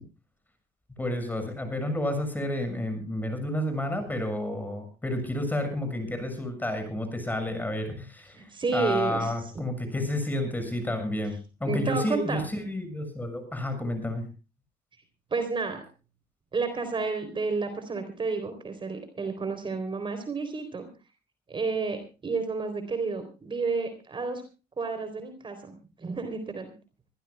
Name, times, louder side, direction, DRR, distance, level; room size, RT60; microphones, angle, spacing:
voice 1, 1.0-14.3, left 1 dB, 10° left, 8 dB, 6.6 m, -30 dB
voice 2, 8.3-9.3 11.7-12.4 15.3-15.8 16.5-20.9 21.5-24.4 24.8-26.7, right 4 dB, 30° right, 8 dB, 3.7 m, -31 dB
25.0 x 15.5 x 2.3 m, 0.33 s
cardioid pair, 110°, 17 cm